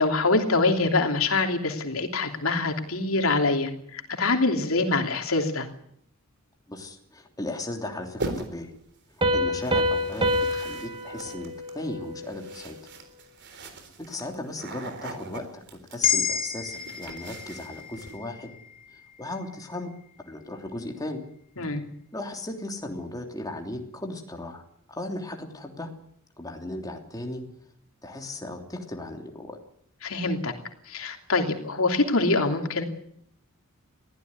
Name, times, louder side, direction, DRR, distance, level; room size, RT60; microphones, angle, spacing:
voice 1, 0.0-5.7 21.6-21.8 30.0-30.5 30.9-32.8, left 3 dB, 75° left, 4 dB, 3.1 m, -24 dB
voice 2, 6.7-8.7 9.1-12.8 13.6-13.7 14.0-15.6 15.9-18.5 18.9-19.9 20.2-21.2 22.1-24.6 24.9-25.9 26.4-27.4 28.0-29.6, left 1 dB, 15° left, 3 dB, 3.1 m, -36 dB
sound 1, 8.2-8.8 9.6-18.2, right 2 dB, 55° right, 3.8 m, -40 dB
Piano, 9.2-12.6, left 1 dB, 25° right, 2.2 m, -27 dB
sound 2, 16.0-20.3, left 8 dB, 40° left, 2.9 m, -31 dB
21.5 x 15.5 x 9.6 m, 0.68 s
head